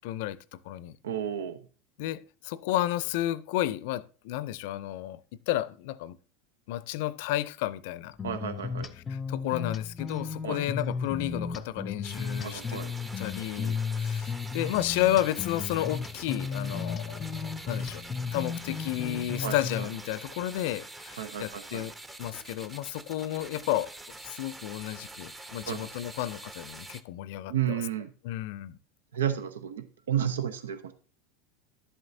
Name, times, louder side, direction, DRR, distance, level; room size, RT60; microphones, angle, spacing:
voice 1, 0.0-1.0 2.0-5.2 5.5-6.2 6.7-8.2 9.3-12.8 13.2-18.0 18.3-21.9 22.2-23.9 24.3-27.8 28.2-28.8, left 14 dB, 65° left, 0.5 m, -32 dB
voice 2, 1.0-1.6 8.2-8.9 10.4-10.7 12.4-12.9 19.4-19.9 21.2-21.9 25.6-25.9 27.5-28.1 29.1-30.9, right 9 dB, 90° right, 0.7 m, -32 dB
sound 1, 8.2-19.9, left 5 dB, 25° left, 0.6 m, -34 dB
sound 2, 12.0-27.0, right 2 dB, 15° right, 0.9 m, -45 dB
11.0 x 7.9 x 2.7 m
hypercardioid pair, 100°, 0 cm